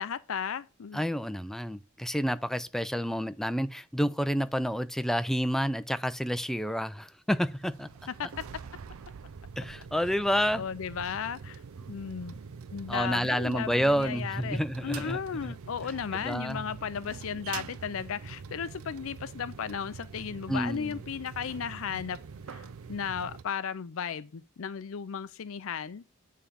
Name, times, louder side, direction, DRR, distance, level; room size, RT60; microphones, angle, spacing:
voice 1, 0.0-1.0 8.2-8.4 10.5-11.6 11.9-12.4 12.7-22.2 22.5-26.0, left 7 dB, 70° left, 0.5 m, -35 dB
voice 2, 0.9-7.9 9.6-10.6 12.9-15.2 15.4-15.5 16.1-16.6 20.5-21.0, equal, ahead, 0.4 m, -29 dB
sound 1, 7.3-23.4, right 5 dB, 80° right, 0.5 m, -44 dB
9.0 x 3.7 x 6.8 m
head